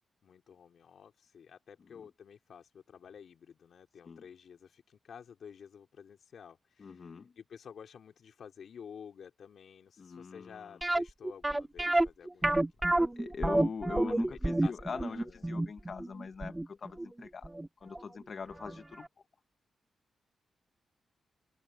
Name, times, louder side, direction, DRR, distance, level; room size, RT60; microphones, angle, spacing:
voice 1, 0.2-7.1 7.4-13.2 14.0-15.4, left 7 dB, 70° left, 3.9 m, -52 dB
voice 2, 6.8-7.3 10.0-10.8 13.2-17.5 17.8-19.1, left 5 dB, 50° left, 1.0 m, -42 dB
sound 1, 10.8-17.7 17.9-18.0 18.6-18.7 19.0-19.1, right 1 dB, 15° right, 0.7 m, -29 dB
open air
cardioid pair, 80°, 0 cm